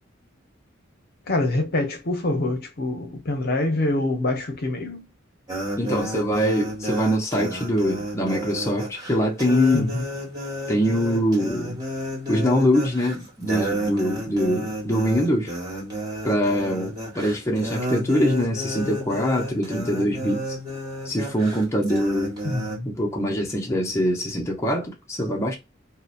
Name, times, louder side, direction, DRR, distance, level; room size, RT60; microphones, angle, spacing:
voice 1, 1.3-5.1 9.7-10.0 22.4-22.9, left 2 dB, 55° left, 0.7 m, -25 dB
sound 1, 5.5-22.8, equal, 20° right, 1.3 m, -31 dB
voice 2, 5.8-9.9 10.7-11.8 12.3-15.5 16.2-20.4 21.1-22.3 22.9-25.5, equal, 15° left, 0.6 m, -23 dB
2.7 x 2.0 x 2.3 m
head